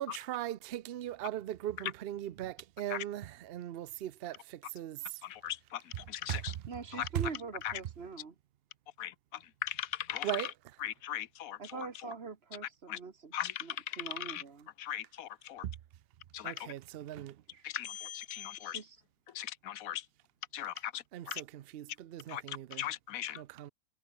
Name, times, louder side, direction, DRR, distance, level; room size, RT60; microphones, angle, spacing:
voice 1, 0.0-5.2 6.3-6.4 7.1-7.3 10.2-10.5 16.4-17.4 21.1-22.8 23.4-23.7, right 12 dB, 80° right, 0.5 m, -39 dB
voice 2, 5.2-6.5 6.9-7.1 7.6-7.8 9.0-10.5 10.8-12.1 12.9-13.0 13.3-14.4 14.8-15.6 16.3-16.7 17.6-18.8 19.3-20.1 20.5-21.4 22.3-23.4, left 11 dB, 65° left, 1.1 m, -39 dB
voice 3, 6.7-8.4 11.6-13.3 13.6-14.7 17.5-17.6 18.6-19.0, right 5 dB, 40° right, 1.8 m, -44 dB
omnidirectional pair, 1.7 m